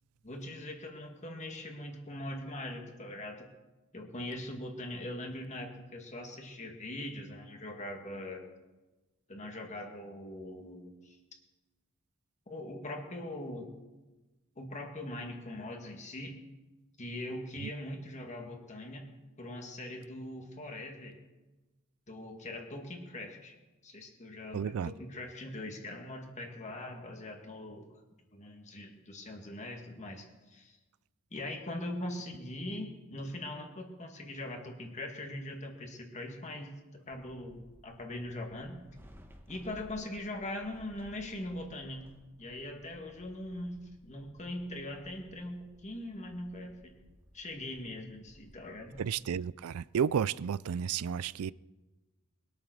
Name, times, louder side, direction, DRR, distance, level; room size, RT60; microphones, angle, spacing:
voice 1, 0.2-3.5 3.9-8.4 9.3-11.2 12.5-13.7 14.6-16.4 17.0-19.1 19.4-21.2 22.1-23.6 23.8-27.8 28.3-30.8 31.3-38.8 39.5-42.1 42.4-47.0 47.3-49.0, left 1 dB, 30° left, 1.9 m, -41 dB
voice 2, 24.5-24.9 49.0-51.5, right 7 dB, 70° right, 0.4 m, -32 dB
sound 1, 37.1-49.0, equal, 10° right, 1.1 m, -58 dB
21.5 x 8.7 x 6.3 m
head